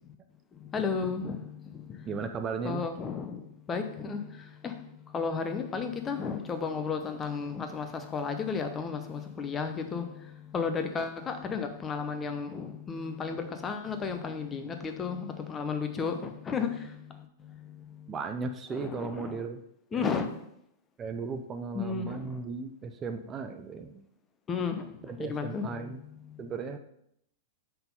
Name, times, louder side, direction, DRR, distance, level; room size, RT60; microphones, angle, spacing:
voice 1, 0.7-1.8 2.6-3.4 3.7-4.2 4.6-4.7 5.1-10.0 10.5-16.9 18.7-19.4 19.9-20.3 21.7-22.3 24.5-24.8 25.2-25.8, left 5 dB, 20° left, 7 dB, 0.7 m, -33 dB
voice 2, 2.1-2.9 18.1-19.6 19.9-20.1 21.0-24.0 25.0-26.0 26.4-26.8, right 5 dB, 25° right, 6 dB, 0.5 m, -36 dB
5.8 x 3.7 x 5.4 m, 0.75 s
figure-of-eight pair, 100°, 0 cm